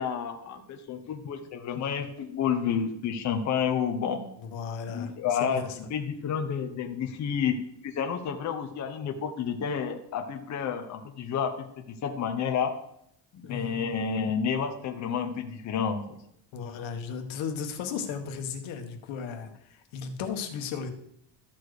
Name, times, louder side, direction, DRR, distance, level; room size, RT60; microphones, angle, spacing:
voice 1, 0.0-4.2 4.9-5.6 5.9-12.7 13.3-16.2, left 7 dB, 40° left, 5 dB, 0.9 m, -30 dB
voice 2, 4.4-5.8 13.4-13.9 16.5-20.9, left 6 dB, 85° left, 5 dB, 1.4 m, -35 dB
13.0 x 4.4 x 4.8 m, 0.74 s
cardioid pair, 155°, 45 cm